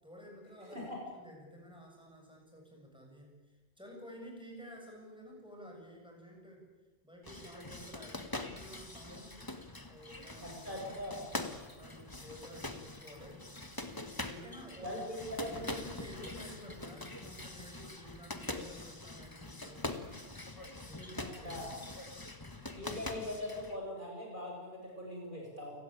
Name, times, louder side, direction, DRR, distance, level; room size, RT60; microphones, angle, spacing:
voice 1, 0.0-0.8 1.1-6.7 7.0-9.4 9.9-11.1 11.4-13.5 14.2-20.3 20.8-21.8, equal, 5° right, -1 dB, 7.4 m, -52 dB
voice 2, 0.6-1.0 10.4-11.2 14.8-15.0 15.3-15.6 21.2-21.7 22.8-25.7, left 1 dB, 50° right, -1 dB, 8.0 m, -41 dB
sound 1, 7.2-23.8, left 2 dB, 20° left, 1.8 m, -44 dB
29.5 x 17.5 x 9.0 m, 1.3 s
omnidirectional pair, 1.1 m